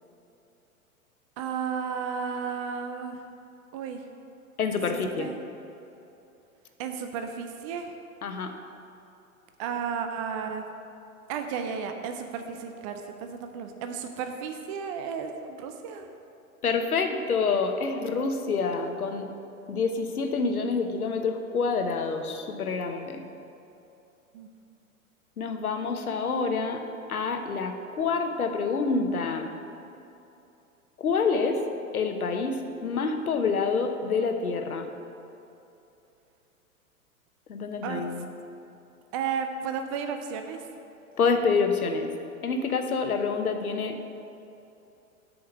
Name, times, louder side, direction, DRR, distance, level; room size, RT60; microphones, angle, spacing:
voice 1, 1.4-3.2 3.7-4.0 4.9-5.3 6.8-7.9 9.6-10.7 11.3-16.1 24.3-24.5 37.8-38.1 39.1-40.6, right 6 dB, 25° right, 6 dB, 0.4 m, -33 dB
voice 2, 4.6-5.3 8.2-8.6 16.6-19.3 19.7-23.2 25.4-26.8 27.1-29.5 31.0-31.6 31.9-34.9 37.5-38.3 41.2-42.1 42.4-44.0, left 4 dB, 75° left, 6 dB, 0.9 m, -27 dB
7.9 x 5.1 x 7.1 m, 2.8 s
figure-of-eight pair, 100°, 44 cm